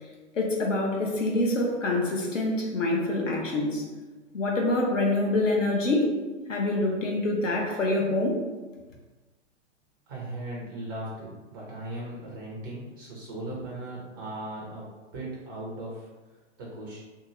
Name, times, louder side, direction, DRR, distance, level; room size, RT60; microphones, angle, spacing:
voice 1, 0.3-3.9 4.3-6.1 6.5-8.4, left 2 dB, 90° left, -1 dB, 0.8 m, -26 dB
voice 2, 10.1-14.8 15.1-17.0, right 1 dB, 20° right, -4 dB, 0.3 m, -38 dB
2.7 x 2.3 x 2.9 m, 1.3 s
hypercardioid pair, 130°, 37 cm